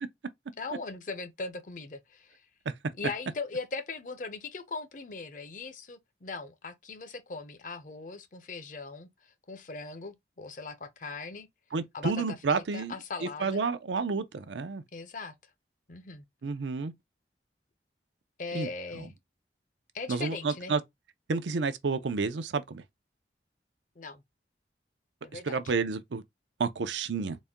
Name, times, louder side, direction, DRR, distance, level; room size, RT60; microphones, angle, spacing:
voice 1, 0.6-2.4 3.0-11.5 11.9-13.6 14.9-15.3 15.9-16.2 18.4-19.1 19.9-20.7 24.0-24.2 25.2-25.6, left 4 dB, 45° left, 0.6 m, -39 dB
voice 2, 11.7-12.9 13.2-14.8 16.4-16.9 18.5-18.7 19.0-19.1 20.1-20.8 21.3-22.8 25.5-26.2 26.6-27.4, right 4 dB, 85° right, 0.5 m, -30 dB
4.1 x 2.2 x 3.5 m
head